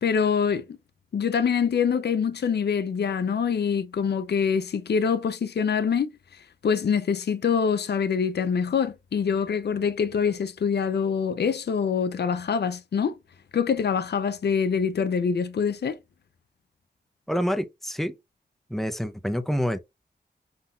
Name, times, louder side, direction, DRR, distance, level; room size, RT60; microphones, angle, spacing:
voice 1, 0.0-0.8 1.1-13.2 13.5-16.0, left 6 dB, 75° left, 0.5 m, -25 dB
voice 2, 17.3-18.1 18.7-19.8, equal, ahead, 0.5 m, -27 dB
5.5 x 3.9 x 2.3 m
wide cardioid pair, 110°, 17 cm